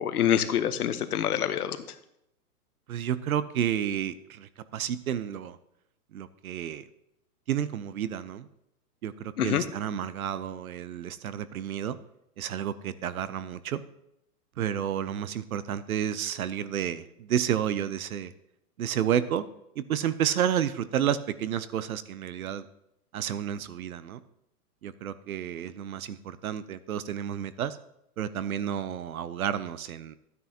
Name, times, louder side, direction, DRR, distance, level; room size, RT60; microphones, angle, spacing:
voice 1, 0.0-1.8 9.4-9.6, left 9 dB, 70° left, 11 dB, 1.0 m, -26 dB
voice 2, 2.9-5.6 6.1-6.9 7.5-8.5 9.0-12.0 12.4-13.8 14.6-18.3 18.8-19.4 19.8-22.7 23.1-24.2 24.8-27.8 28.2-30.2, right 9 dB, 65° right, 15 dB, 0.6 m, -31 dB
12.5 x 9.4 x 2.8 m, 0.80 s
hypercardioid pair, 175°, 47 cm